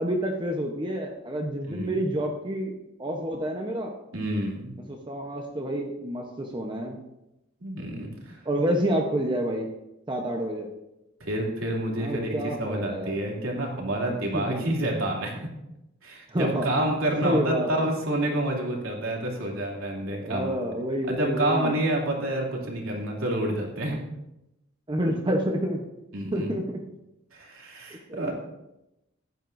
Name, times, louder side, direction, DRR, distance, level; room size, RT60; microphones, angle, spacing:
voice 1, 0.0-2.7 3.0-4.0 4.8-7.0 8.4-9.7 10.1-10.7 12.0-13.2 14.3-14.6 16.3-16.7 17.2-17.9 20.1-21.7 24.9-25.8 26.3-26.8 28.1-28.3, right 1 dB, 25° right, 1 dB, 0.9 m, -28 dB
voice 2, 4.1-4.7 7.6-8.4 11.2-15.4 16.0-20.6 21.1-24.0 26.1-26.5 27.3-28.3, right 1 dB, 85° right, -2 dB, 2.9 m, -28 dB
15.0 x 11.0 x 2.7 m, 0.90 s
head